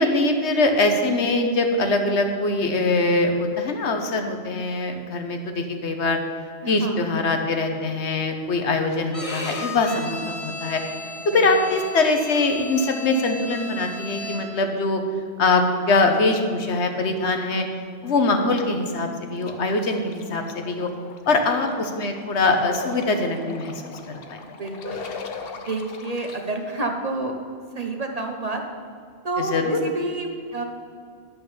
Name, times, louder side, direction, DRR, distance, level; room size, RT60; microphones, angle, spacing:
voice 1, 0.0-6.2 6.7-10.8 11.3-15.0 15.4-17.6 18.0-20.9 21.3-23.9 24.3-24.4 29.4-29.8, left 2 dB, 75° left, 5 dB, 1.3 m, -22 dB
voice 2, 6.6-7.1 11.3-11.4 24.4-25.0 25.6-27.3 27.7-28.6 29.2-30.6, right 2 dB, 35° right, 3 dB, 1.0 m, -29 dB
Bowed string instrument, 9.1-14.7, left 2 dB, 30° left, 1.0 m, -35 dB
sound 1, 19.4-26.4, left 4 dB, 60° left, 1.0 m, -39 dB
11.0 x 5.8 x 7.0 m, 2.2 s
omnidirectional pair, 1.2 m